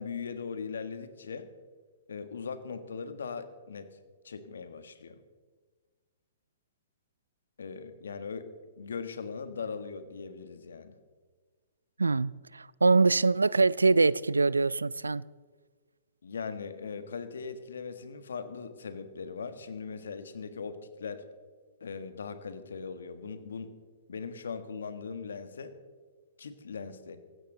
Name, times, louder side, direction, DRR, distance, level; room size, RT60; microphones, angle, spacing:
voice 1, 0.0-1.5 2.1-4.0 4.2-5.2 7.6-8.5 8.8-11.0 16.2-21.2 21.8-23.7 24.1-25.7 26.4-27.2, left 5 dB, 75° left, 1.5 m, -39 dB
voice 2, 12.0-15.2, right 3 dB, 90° right, 0.4 m, -24 dB
18.0 x 16.0 x 3.9 m
figure-of-eight pair, 120°, 0 cm